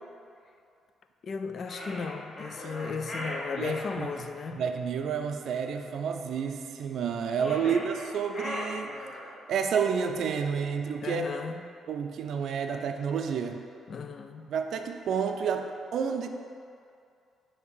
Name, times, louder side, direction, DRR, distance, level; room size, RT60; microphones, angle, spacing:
voice 1, 1.2-4.7 7.5-7.7 11.0-11.7 13.9-14.5, left 5 dB, 55° left, 8 dB, 0.4 m, -35 dB
sound 1, 1.6-4.0 7.2-9.4, left 1 dB, 35° left, 1.2 m, -39 dB
voice 2, 3.6-4.1 4.6-8.9 9.5-11.2 11.9-13.6 14.5-16.3, right 6 dB, 70° right, 5 dB, 0.4 m, -30 dB
6.4 x 2.8 x 5.4 m, 2.4 s
cardioid pair, 90°, 0 cm